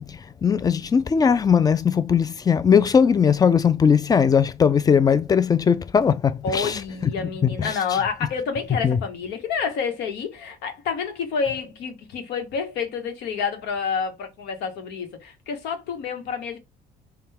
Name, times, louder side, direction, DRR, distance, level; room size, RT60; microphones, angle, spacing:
voice 1, 0.0-7.1 7.4-8.0 8.8-9.0, left 7 dB, 20° left, 0.4 m, -19 dB
voice 2, 6.4-16.6, left 6 dB, 85° left, 1.1 m, -28 dB
3.7 x 2.3 x 4.1 m
cardioid pair, 110°, 17 cm